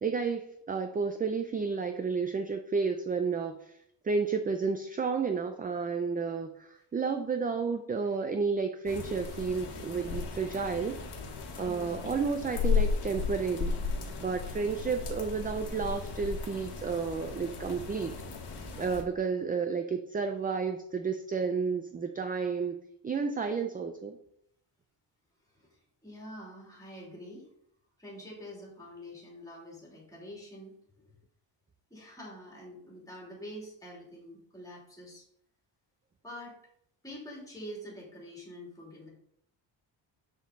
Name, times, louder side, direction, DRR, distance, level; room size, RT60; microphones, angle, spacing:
voice 1, 0.0-3.8 4.0-10.9 11.6-13.7 14.2-18.1 18.8-22.8 23.0-24.2, right 5 dB, 20° right, 6 dB, 0.3 m, -31 dB
sound 1, 8.9-19.0, left 5 dB, 55° left, 1.5 m, -35 dB
voice 2, 11.6-12.1 25.5-27.5 28.0-30.7 31.9-35.2 36.2-36.5 37.0-39.1, equal, 10° left, -4 dB, 2.8 m, -46 dB
7.4 x 6.4 x 4.0 m, 0.72 s
wide cardioid pair, 175°, 46 cm